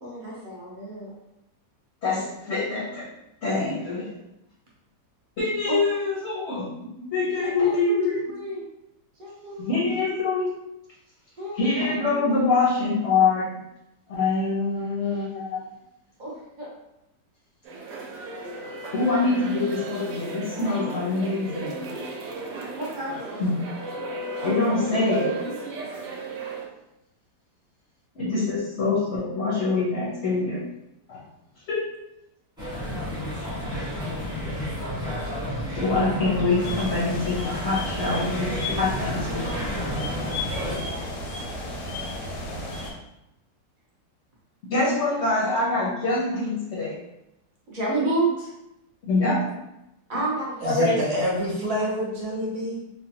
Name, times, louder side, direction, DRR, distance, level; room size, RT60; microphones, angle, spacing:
voice 1, 0.0-1.1 5.7-5.8 7.4-8.7 9.2-10.2 11.4-12.4 16.2-16.7 22.7-23.5 32.9-33.3 40.7-41.4 47.7-48.3 50.1-51.5 51.8-51.9, right 2 dB, 50° right, -5 dB, 0.6 m, -32 dB
voice 2, 2.0-3.1 3.4-4.1 5.4-8.1 9.6-10.5 11.6-13.6 14.1-15.6 18.9-21.8 23.4-23.5 24.4-25.4 28.1-30.6 31.1-31.2 31.7-31.9 35.7-39.7 44.7-47.0 48.0-48.1 49.0-49.4 50.6-51.0, left 3 dB, 60° left, -6 dB, 0.8 m, -25 dB
sound 1, 17.6-26.7, right 3 dB, 85° right, 1.2 m, -34 dB
sound 2, 32.6-40.8, equal, 5° right, 0.8 m, -31 dB
sound 3, 36.6-42.9, left 1 dB, 80° left, 1.2 m, -34 dB
voice 3, 50.6-52.8, right 1 dB, 65° right, -4 dB, 1.2 m, -27 dB
3.2 x 2.1 x 2.8 m, 0.88 s
omnidirectional pair, 1.8 m